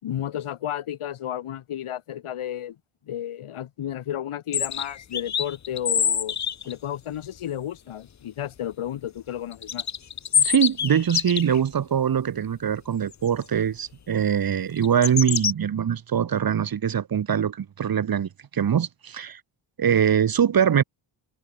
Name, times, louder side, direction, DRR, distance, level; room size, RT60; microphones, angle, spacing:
voice 1, 0.0-2.8 3.1-6.4 6.6-9.8, left 11 dB, 80° left, 4.7 m, -32 dB
sound 1, 4.5-6.7 9.5-11.6 13.1-13.3 14.8-15.5, left 8 dB, 35° left, 0.9 m, -25 dB
voice 2, 10.4-19.4 19.8-20.8, right 8 dB, 45° right, 1.4 m, -23 dB
cardioid pair, 120°, 50 cm